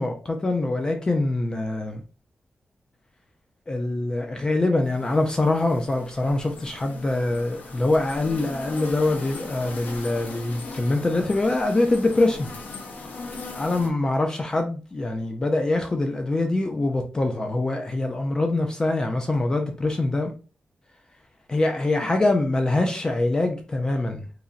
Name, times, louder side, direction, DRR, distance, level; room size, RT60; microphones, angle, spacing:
voice 1, 0.0-2.0 3.7-12.5 13.2-20.3 21.5-24.3, left 2 dB, 25° left, 0.3 m, -24 dB
sound 1, 4.8-13.9, left 3 dB, 80° left, 0.6 m, -39 dB
2.9 x 2.5 x 2.4 m
wide cardioid pair, 170°, 3 cm